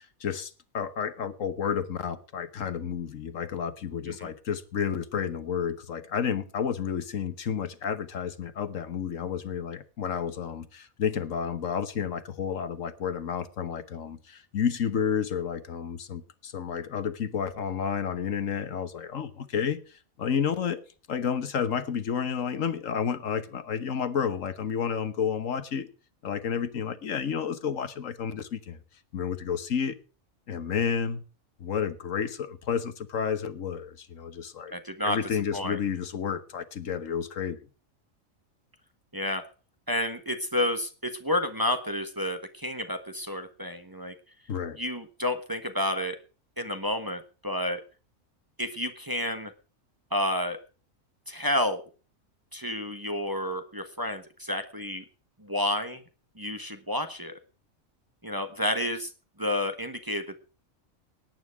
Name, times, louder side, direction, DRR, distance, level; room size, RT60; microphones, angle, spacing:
voice 1, 0.0-19.8 20.2-20.8 21.1-25.9 26.2-28.8 29.1-30.0 30.5-31.2 31.6-34.7 35.0-37.6 44.5-44.8, left 7 dB, 70° left, 1.5 m, -31 dB
voice 2, 34.7-35.2 35.5-35.8 39.1-39.4 39.9-44.1 44.7-46.2 46.6-47.8 48.6-49.5 50.1-50.6 51.3-51.8 52.5-55.0 55.4-56.0 56.4-57.3 58.2-59.1 59.4-60.5, left 1 dB, 15° right, 1.2 m, -30 dB
18.0 x 9.4 x 4.8 m
omnidirectional pair, 1.4 m